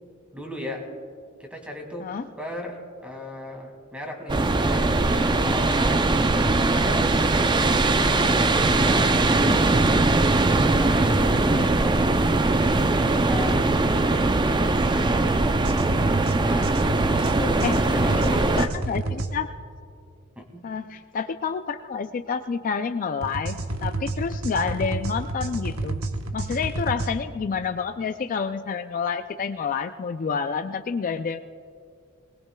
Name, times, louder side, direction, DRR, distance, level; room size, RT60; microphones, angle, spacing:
voice 1, 0.3-0.9 1.4-2.1 2.4-5.0 5.3-7.2 8.1-9.5 10.4-12.4 12.9-15.4 16.4-16.8 17.1-18.7 20.4-20.7, equal, 5° right, 2 dB, 2.0 m, -36 dB
sound 1, 4.3-18.7, right 2 dB, 20° right, 0.4 m, -21 dB
voice 2, 9.3-9.6 17.6-17.8 18.1-19.6 20.6-26.0 26.3-31.4, left 5 dB, 40° left, 8 dB, 0.3 m, -29 dB
sound 2, 15.4-19.3 23.2-27.1, right 2 dB, 80° right, 1.0 m, -30 dB
21.5 x 20.0 x 2.3 m, 2.4 s
head